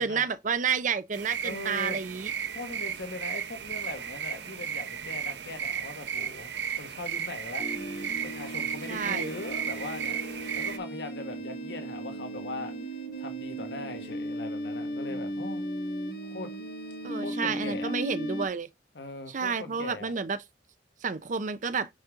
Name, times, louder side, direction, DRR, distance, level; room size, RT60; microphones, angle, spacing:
voice 1, 0.0-2.3 8.9-9.3 17.0-18.7 19.3-20.4 21.0-21.9, right 6 dB, 45° right, 0.5 m, -30 dB
sound 1, 1.1-10.8, right 8 dB, 75° right, 0.9 m, -34 dB
voice 2, 1.4-2.0 2.5-6.5 6.8-7.9 8.2-10.2 10.6-12.8 13.2-15.6 16.3-16.5 17.1-17.9 18.9-20.1, left 2 dB, 75° left, 1.2 m, -40 dB
sound 2, 7.6-18.5, equal, 60° left, 1.5 m, -36 dB
5.3 x 5.3 x 3.6 m
head